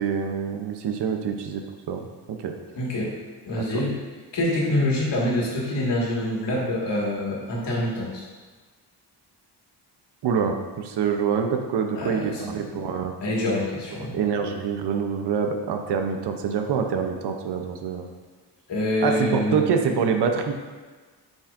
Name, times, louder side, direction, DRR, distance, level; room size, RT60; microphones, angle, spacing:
voice 1, 0.0-2.5 10.2-13.1 14.1-18.1 19.0-20.5, right 6 dB, 70° right, 4 dB, 0.7 m, -26 dB
voice 2, 2.8-3.2 3.5-4.0 4.3-8.2 11.9-12.6 13.2-14.1 18.7-19.6, left 1 dB, 90° left, -5 dB, 1.9 m, -26 dB
8.5 x 5.4 x 2.5 m, 1.4 s
wide cardioid pair, 175°, 41 cm